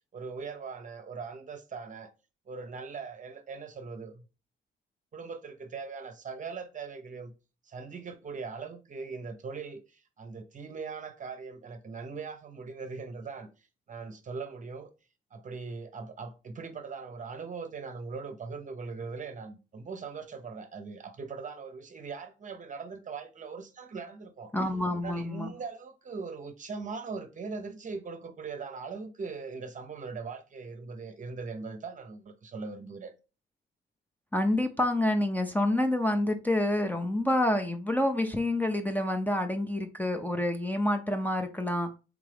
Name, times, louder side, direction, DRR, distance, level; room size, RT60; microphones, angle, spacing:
voice 1, 0.0-2.1 2.5-4.3 5.1-7.4 7.6-13.5 13.9-14.9 15.3-24.5 25.0-33.1, right 4 dB, 40° right, 0.7 m, -40 dB
voice 2, 24.5-25.5 34.3-41.9, left 1 dB, 10° left, 0.6 m, -28 dB
3.6 x 3.5 x 3.4 m
cardioid pair, 90°, 20 cm